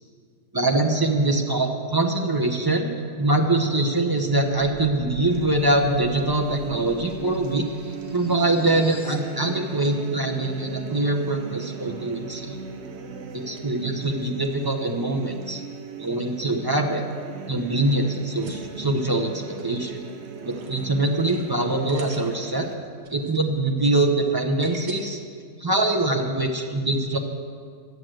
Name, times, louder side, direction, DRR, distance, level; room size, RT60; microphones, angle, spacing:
voice 1, 0.5-2.9 3.2-12.6 13.3-15.6 16.0-17.0 17.5-20.0 20.4-22.7 23.1-25.2 25.6-27.2, right 2 dB, 30° right, 3 dB, 0.4 m, -23 dB
sound 1, 4.4-9.3, left 2 dB, 25° left, 0.7 m, -46 dB
sound 2, 5.3-22.7, right 5 dB, 50° right, 0.9 m, -38 dB
sound 3, 18.4-24.9, right 4 dB, 75° right, 1.8 m, -46 dB
12.0 x 7.8 x 7.6 m, 2.1 s
omnidirectional pair, 1.8 m